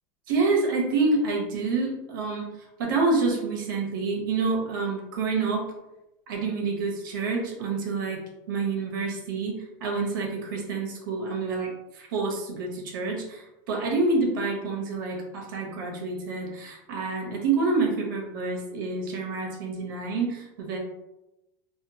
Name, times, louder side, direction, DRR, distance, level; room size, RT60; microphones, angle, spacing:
voice 1, 0.3-5.7 6.3-8.2 8.5-20.8, right 3 dB, 65° right, 1 dB, 0.7 m, -28 dB
2.7 x 2.1 x 2.6 m, 0.94 s
supercardioid pair, 175°, 12 cm